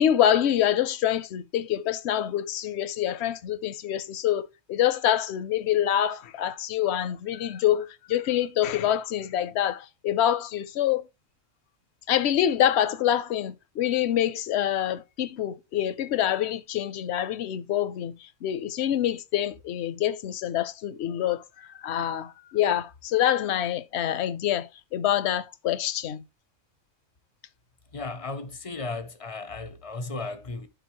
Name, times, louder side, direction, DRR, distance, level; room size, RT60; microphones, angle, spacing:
voice 1, 0.0-11.1 12.1-26.2, left 11 dB, 60° left, 0.8 m, -26 dB
voice 2, 27.9-30.7, left 3 dB, 35° left, 0.5 m, -35 dB
11.5 x 4.0 x 3.0 m
omnidirectional pair, 1.4 m